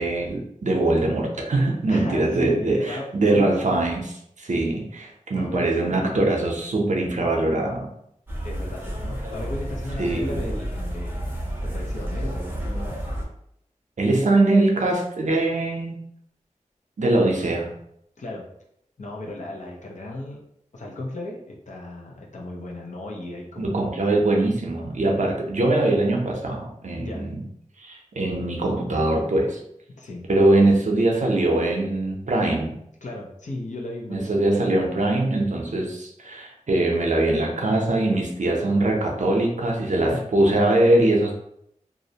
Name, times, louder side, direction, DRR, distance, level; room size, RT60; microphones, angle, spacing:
voice 1, 0.0-7.9 10.0-10.4 14.0-16.0 17.0-17.7 23.6-27.4 27.8-29.6 30.3-32.8 34.1-41.3, right 2 dB, 65° right, 0 dB, 0.5 m, -22 dB
voice 2, 1.9-3.1 3.3-3.5 5.3-5.7 8.4-11.3 11.6-13.0 18.2-18.4 19.0-20.4 20.7-23.9 27.0-27.3 30.0-30.2 33.0-34.3 39.9-40.3, left 1 dB, 65° left, -2 dB, 0.6 m, -35 dB
sound 1, 8.3-13.2, equal, 15° right, 0.6 m, -30 dB
2.5 x 2.0 x 2.7 m, 0.73 s
wide cardioid pair, 65°, 13 cm